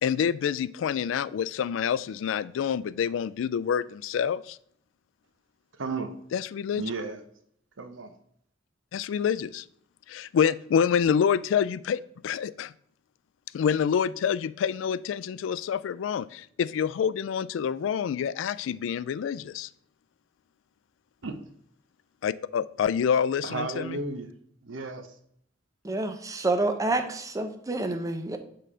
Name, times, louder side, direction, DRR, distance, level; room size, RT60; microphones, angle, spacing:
voice 1, 0.0-4.6 6.3-6.8 8.9-9.6 10.1-12.7 13.5-19.7 22.2-24.0, left 7 dB, 85° left, 18 dB, 0.3 m, -27 dB
voice 2, 5.8-6.1 6.7-7.2 7.8-8.1 21.2-21.3 23.4-24.3 24.6-25.1, right 3 dB, 90° right, 8 dB, 0.8 m, -33 dB
voice 3, 25.8-28.4, right 2 dB, 20° right, 7 dB, 0.6 m, -28 dB
6.7 x 3.8 x 4.9 m, 0.68 s
head